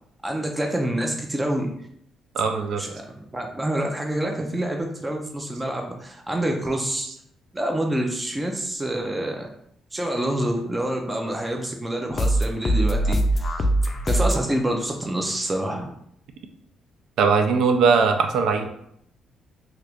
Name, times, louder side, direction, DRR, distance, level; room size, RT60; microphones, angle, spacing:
voice 1, 0.2-1.7 2.8-7.1 7.5-9.5 9.9-13.6 14.0-15.9, right 1 dB, 15° right, 2 dB, 0.5 m, -27 dB
voice 2, 2.4-2.8 17.2-18.7, right 5 dB, 75° right, 6 dB, 0.4 m, -20 dB
sound 1, 12.1-14.5, right 1 dB, 40° left, 0.4 m, -22 dB
2.8 x 2.4 x 3.3 m, 0.71 s
cardioid pair, 90°, 0 cm